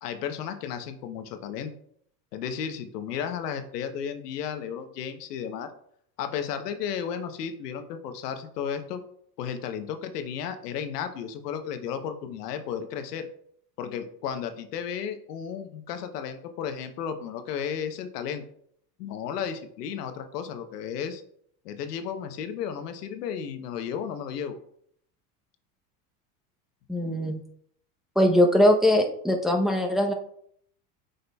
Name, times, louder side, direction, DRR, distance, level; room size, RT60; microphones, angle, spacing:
voice 1, 0.0-1.7 2.3-5.7 6.2-9.0 9.4-13.3 13.8-18.4 19.0-21.2 21.6-24.6, left 8 dB, 90° left, 8 dB, 0.9 m, -33 dB
voice 2, 26.9-27.4 28.2-30.1, left 1 dB, ahead, 1 dB, 0.7 m, -21 dB
8.1 x 5.2 x 2.3 m, 0.67 s
supercardioid pair, 110°, 46 cm